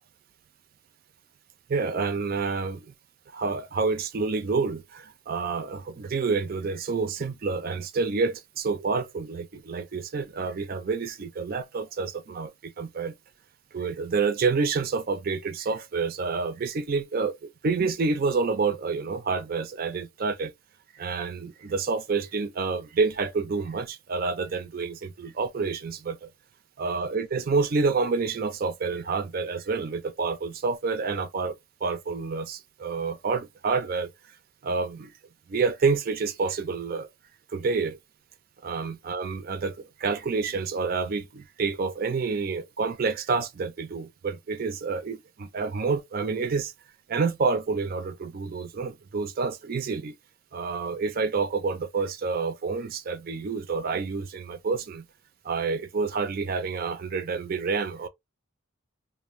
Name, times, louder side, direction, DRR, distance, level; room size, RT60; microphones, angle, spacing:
voice 1, 1.7-2.9 3.3-13.1 13.7-20.5 20.9-26.3 26.8-31.5 31.8-34.1 34.6-35.1 35.5-37.1 37.5-38.0 38.6-46.7 47.1-50.1 50.5-55.0 55.4-58.1, right 4 dB, 45° right, 0.3 m, -28 dB
2.5 x 2.0 x 3.0 m
head